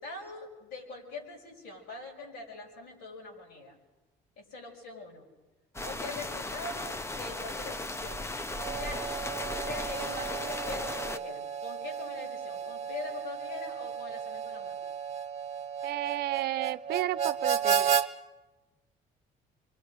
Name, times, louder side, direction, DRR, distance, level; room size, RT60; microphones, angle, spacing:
voice 1, 0.0-3.8 4.4-5.3 5.8-8.3 8.8-9.0 9.7-14.8, left 3 dB, 90° left, -1 dB, 6.1 m, -43 dB
sound 1, 5.7-11.2, left 2 dB, 15° left, 0.7 m, -36 dB
Harmonica, 8.5-18.1, right 7 dB, 40° right, 1.0 m, -33 dB
voice 2, 15.8-18.0, right 15 dB, 70° right, 15 dB, 0.6 m, -32 dB
26.5 x 23.5 x 5.2 m, 1.1 s
cardioid pair, 110°, 17 cm